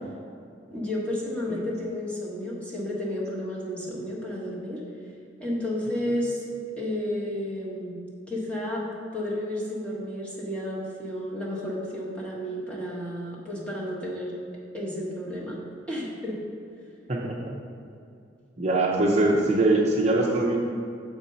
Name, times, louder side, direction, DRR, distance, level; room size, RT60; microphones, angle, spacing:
voice 1, 0.7-4.8 5.4-6.4 6.8-8.0 8.3-14.3 14.7-15.6 15.9-16.4, left 1 dB, 5° left, -6 dB, 1.4 m, -32 dB
voice 2, 17.1-17.5 18.6-20.6, right 2 dB, 35° right, -3 dB, 0.7 m, -23 dB
7.2 x 4.4 x 5.4 m, 2.4 s
head